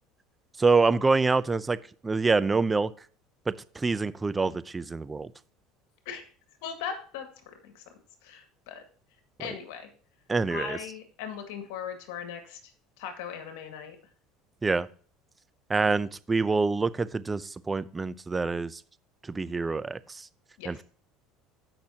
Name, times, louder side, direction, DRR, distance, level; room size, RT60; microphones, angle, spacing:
voice 1, 0.6-1.8 2.0-2.9 3.5-5.3 10.3-10.8 14.6-14.9 15.7-18.8 19.3-20.3 20.7-20.8, right 4 dB, 20° right, 17 dB, 0.5 m, -26 dB
voice 2, 6.6-7.8 8.2-8.8 9.4-9.9 10.5-12.7 13.0-14.0 20.6-20.7, left 7 dB, 80° left, 5 dB, 2.1 m, -39 dB
15.5 x 6.0 x 2.9 m, 0.43 s
supercardioid pair, 100°, 0 cm